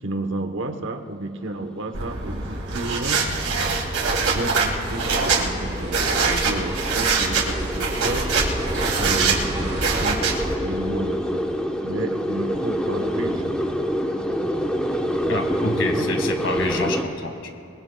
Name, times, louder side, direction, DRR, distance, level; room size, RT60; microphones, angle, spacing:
voice 1, 0.0-3.4 4.2-8.3 9.0-11.5 11.8-13.6 15.8-16.3, right 2 dB, 60° right, 7 dB, 1.0 m, -32 dB
sound 1, 1.5-17.0, equal, 5° left, 0.9 m, -28 dB
sound 2, 1.9-10.5, right 4 dB, 85° right, 2.2 m, -24 dB
sound 3, 4.9-10.0, right 1 dB, 20° right, 3.3 m, -37 dB
voice 2, 15.3-17.6, left 2 dB, 65° left, 4 dB, 1.7 m, -27 dB
26.0 x 21.5 x 2.3 m, 2.5 s
head